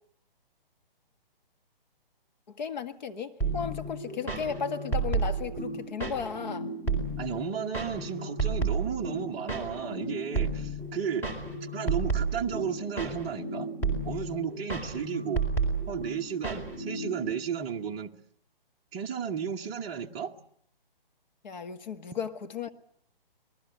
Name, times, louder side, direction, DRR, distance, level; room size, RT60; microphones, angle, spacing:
voice 1, 2.5-6.7 21.4-22.7, left 6 dB, 50° left, 1.8 m, -35 dB
sound 1, 3.4-17.3, right 3 dB, 10° left, 4.3 m, -32 dB
voice 2, 7.2-11.3 11.7-13.7 14.0-15.5 15.9-18.1 18.9-20.3, right 7 dB, 15° right, 1.0 m, -33 dB
26.0 x 20.0 x 7.7 m
hypercardioid pair, 150°, 29 cm